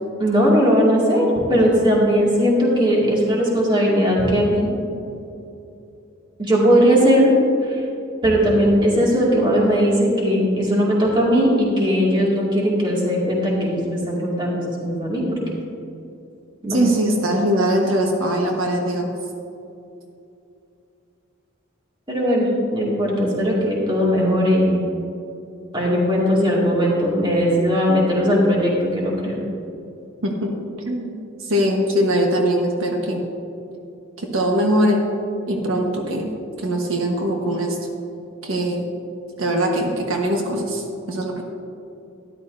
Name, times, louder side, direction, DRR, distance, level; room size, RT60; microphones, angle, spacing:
voice 1, 0.2-4.7 6.4-7.3 8.2-15.2 16.6-16.8 22.1-24.8 25.7-29.4, equal, 25° right, -5 dB, 2.2 m, -18 dB
voice 2, 16.7-19.1 30.2-30.5 30.9-31.2 31.4-33.2 34.2-35.0 35.5-36.3 36.6-37.8 38.4-38.9 39.4-41.4, equal, 85° right, 1 dB, 1.3 m, -21 dB
13.0 x 11.5 x 2.6 m, 2.7 s
head